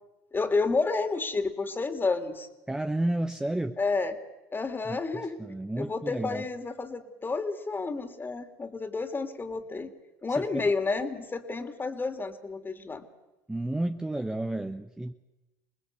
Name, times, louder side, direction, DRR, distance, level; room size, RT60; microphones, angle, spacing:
voice 1, 0.3-2.5 3.8-4.2 4.5-5.4 5.8-9.9 10.2-13.0, left 3 dB, 25° left, 8 dB, 2.9 m, -30 dB
voice 2, 2.7-3.8 4.9-5.0 5.4-6.4 10.4-10.6 13.5-15.1, right 1 dB, 5° right, 6 dB, 1.1 m, -31 dB
27.0 x 19.5 x 8.1 m, 1.0 s
hypercardioid pair, 75°, 9 cm